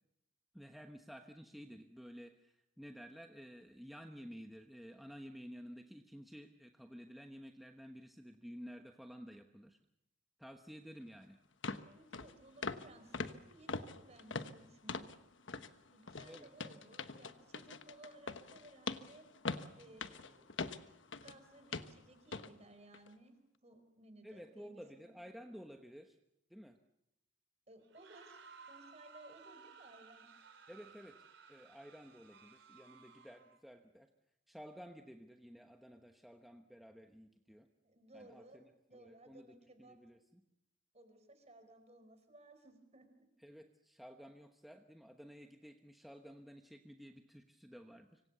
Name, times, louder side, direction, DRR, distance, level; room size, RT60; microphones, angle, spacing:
voice 1, 0.5-9.8 10.4-11.4 16.2-16.5 24.2-26.2 26.5-26.8 30.7-31.2 31.5-34.1 34.5-37.7 38.1-38.6 38.9-40.4 43.4-48.2, equal, ahead, 4 dB, 1.1 m, -53 dB
sound 1, 11.0-11.1 11.6-11.9 12.1-12.3 12.6-12.9 13.1-15.2 15.5-15.7 16.1-21.4 21.7-21.9 22.3-22.5 22.9-23.1, left 4 dB, 75° left, 1.2 m, -42 dB
voice 2, 11.9-15.2 15.9-19.3 19.8-20.6 21.1-23.3 23.6-25.2 27.7-28.4 28.7-30.3 37.8-38.6 38.9-40.0 40.9-43.3, right 2 dB, 35° right, 8 dB, 4.6 m, -59 dB
sound 2, 27.8-33.6, right 5 dB, 75° right, 4.5 m, -58 dB
26.0 x 25.0 x 6.9 m, 0.86 s
head